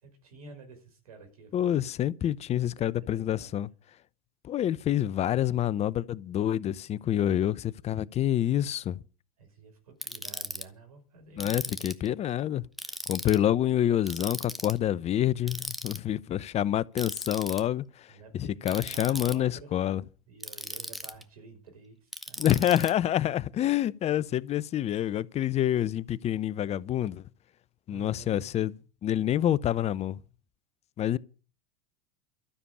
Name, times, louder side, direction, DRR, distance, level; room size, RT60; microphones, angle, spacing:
voice 1, 0.0-1.9 2.6-3.6 7.2-7.6 7.9-8.0 9.4-11.9 16.4-16.6 18.1-19.8 20.3-22.5 27.9-28.5 31.0-31.2, right 4 dB, 80° right, 5.5 m, -51 dB
voice 2, 1.5-3.7 4.4-9.0 11.4-12.6 13.1-20.0 22.4-27.2 27.9-28.7 29.0-30.2 31.0-31.2, left 11 dB, 35° left, 0.7 m, -27 dB
Ratchet pawl, 10.0-10.6 11.4-12.1 12.8-13.4 14.1-14.8 15.5-16.0 17.0-17.6 18.7-19.3 20.4-21.2 22.1-22.9, equal, ahead, 1.3 m, -37 dB
13.0 x 7.0 x 9.9 m
hypercardioid pair, 80°, 19 cm